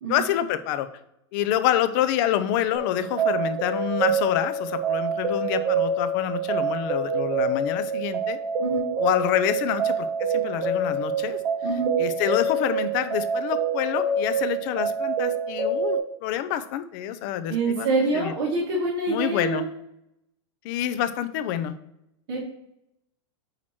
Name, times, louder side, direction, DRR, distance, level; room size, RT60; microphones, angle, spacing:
voice 1, 0.1-0.9 1.3-8.4 9.0-11.4 12.0-17.9 18.1-18.3 19.1-19.7 20.6-21.7, left 11 dB, 45° left, 11 dB, 0.5 m, -27 dB
sound 1, 2.7-16.0, right 4 dB, 35° right, 2.3 m, -26 dB
voice 2, 11.6-11.9 17.5-19.7 22.3-22.4, right 3 dB, 50° right, -4 dB, 1.8 m, -26 dB
8.7 x 3.0 x 4.3 m, 0.82 s
supercardioid pair, 150°, 15 cm